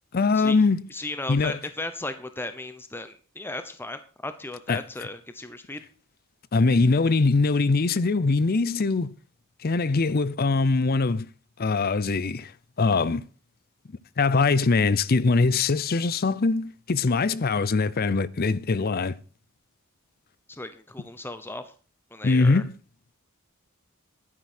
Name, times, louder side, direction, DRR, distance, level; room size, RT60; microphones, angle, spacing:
voice 1, 0.1-0.8 1.3-1.6 4.7-4.8 6.5-9.1 9.6-11.3 11.6-12.5 12.8-13.2 14.2-19.2 22.2-22.7, left 3 dB, 45° left, 0.6 m, -22 dB
voice 2, 0.9-5.8 20.5-21.7 22.1-22.6, left 2 dB, 10° left, 0.8 m, -36 dB
11.5 x 9.6 x 4.3 m
head